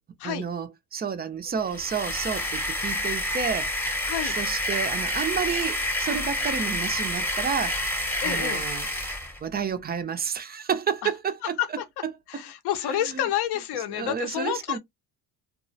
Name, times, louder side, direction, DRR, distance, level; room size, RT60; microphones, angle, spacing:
voice 1, 0.2-3.7 4.2-7.9 8.2-8.9 9.4-12.4 12.9-13.3 13.9-14.8, right 7 dB, 25° right, 0.3 m, -31 dB
sound 1, 1.6-9.4, left 1 dB, 5° left, 0.7 m, -28 dB
voice 2, 8.2-8.6 11.6-11.8 12.3-14.8, left 11 dB, 65° left, 0.6 m, -29 dB
2.3 x 2.0 x 2.6 m
supercardioid pair, 80°, 43 cm